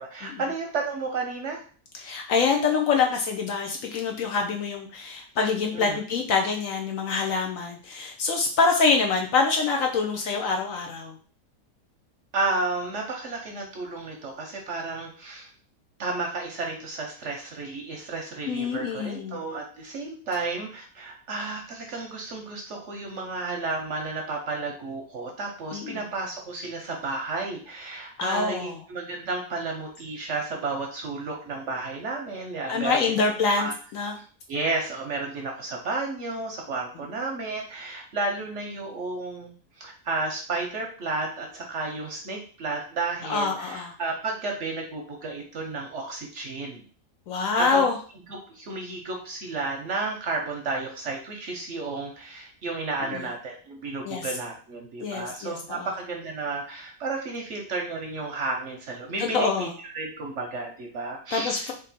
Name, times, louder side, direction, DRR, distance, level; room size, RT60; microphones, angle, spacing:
voice 1, 0.0-1.6 5.7-6.0 12.3-15.5 16.0-33.0 33.5-33.7 34.5-46.8 47.6-47.8 48.3-61.7, right 3 dB, 60° right, 1 dB, 0.8 m, -32 dB
voice 2, 1.9-11.2 18.5-19.4 25.7-26.1 28.2-28.7 32.7-34.2 43.2-43.9 47.3-48.0 53.1-53.2 54.0-54.3 55.0-55.9 59.2-59.7 61.3-61.7, left 4 dB, 70° left, 2 dB, 0.8 m, -25 dB
3.6 x 2.6 x 4.0 m, 0.42 s
omnidirectional pair, 1.7 m